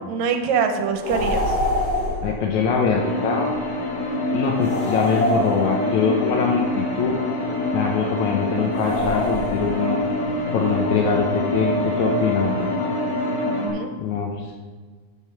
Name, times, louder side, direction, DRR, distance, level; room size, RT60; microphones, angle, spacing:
voice 1, 0.0-1.5 13.4-14.0, right 6 dB, 75° right, 6 dB, 1.9 m, -24 dB
sound 1, 1.0-2.3 4.6-6.0 8.7-9.8, left 1 dB, 30° left, 0.6 m, -25 dB
voice 2, 2.2-3.5 4.3-7.1 7.7-10.0 10.5-12.9 14.0-14.5, left 5 dB, 80° left, 0 dB, 2.1 m, -23 dB
sound 2, 2.9-13.7, left 1 dB, 60° left, 2.1 m, -25 dB
7.8 x 5.8 x 5.7 m, 1.4 s
omnidirectional pair, 3.4 m